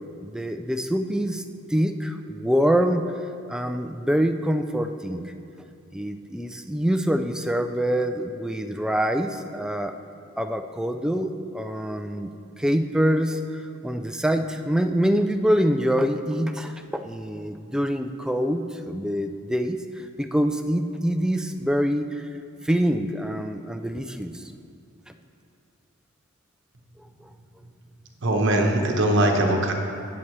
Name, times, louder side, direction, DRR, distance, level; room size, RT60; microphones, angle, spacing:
voice 1, 0.2-1.4 1.7-3.1 3.5-5.3 5.9-10.0 10.4-12.3 12.6-13.4 13.8-19.8 20.2-22.3 22.6-24.4 28.8-28.9, equal, 5° right, 7 dB, 0.3 m, -25 dB
voice 2, 28.2-29.7, right 1 dB, 55° right, 2 dB, 1.1 m, -21 dB
17.0 x 7.2 x 3.2 m, 2.6 s
head